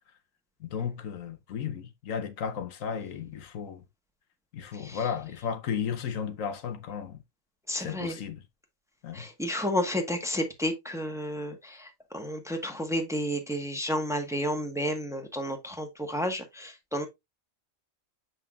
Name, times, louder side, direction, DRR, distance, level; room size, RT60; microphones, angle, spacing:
voice 1, 0.6-3.8 4.5-7.2 7.8-8.4 9.0-9.3, left 7 dB, 85° left, 1.3 m, -34 dB
voice 2, 4.7-5.0 7.7-8.2 9.1-17.1, equal, ahead, 1.1 m, -31 dB
7.8 x 5.6 x 2.4 m
omnidirectional pair, 1.3 m